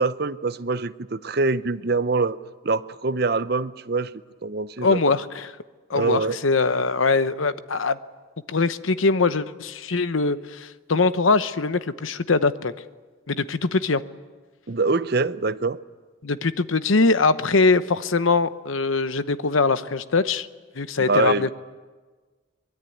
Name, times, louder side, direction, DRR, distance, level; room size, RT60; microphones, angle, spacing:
voice 1, 0.0-2.4 2.6-4.1 4.4-5.0 5.9-6.4 14.7-15.8 21.1-21.5, right 3 dB, 50° right, 0.7 m, -24 dB
voice 2, 4.8-5.5 5.9-8.0 8.5-12.7 13.3-14.0 16.2-20.5 20.8-21.5, left 3 dB, 90° left, 0.9 m, -22 dB
23.5 x 21.0 x 9.3 m
head